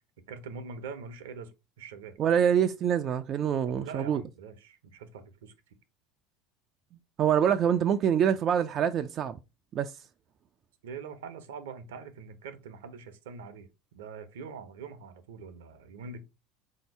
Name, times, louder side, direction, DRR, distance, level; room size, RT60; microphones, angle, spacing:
voice 1, 0.3-1.5 1.8-2.2 3.7-5.7 10.8-13.7 13.9-16.2, right 5 dB, 80° right, 0.7 m, -43 dB
voice 2, 2.2-4.2 7.2-9.4 9.7-9.9, right 8 dB, 45° right, 0.4 m, -25 dB
3.8 x 2.8 x 4.4 m
hypercardioid pair, 75°, 0 cm